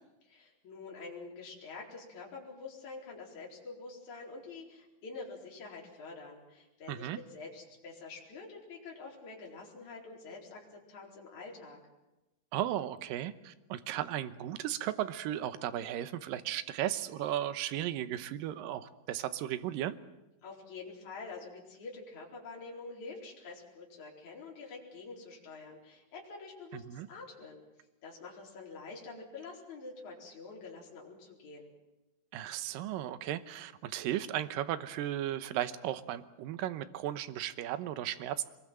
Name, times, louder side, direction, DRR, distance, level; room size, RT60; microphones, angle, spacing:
voice 1, 0.3-11.8 20.4-27.6 28.0-31.7, left 4 dB, 45° left, -2 dB, 5.5 m, -47 dB
voice 2, 6.9-7.2 12.5-20.0 26.7-27.1 32.3-38.4, right 12 dB, 70° right, 12 dB, 2.3 m, -35 dB
24.5 x 21.5 x 7.6 m, 1.0 s
omnidirectional pair, 4.8 m